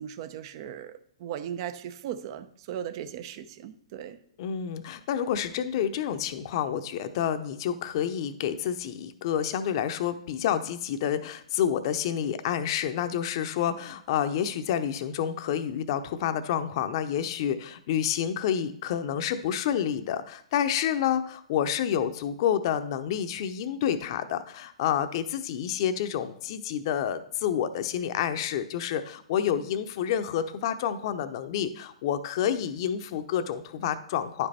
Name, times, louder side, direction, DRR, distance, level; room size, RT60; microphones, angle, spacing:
voice 1, 0.0-4.2, right 10 dB, 45° right, 12 dB, 0.7 m, -37 dB
voice 2, 4.4-34.5, left 9 dB, 50° left, 10 dB, 0.7 m, -29 dB
9.9 x 5.4 x 4.2 m, 0.63 s
hypercardioid pair, 130°, 3 cm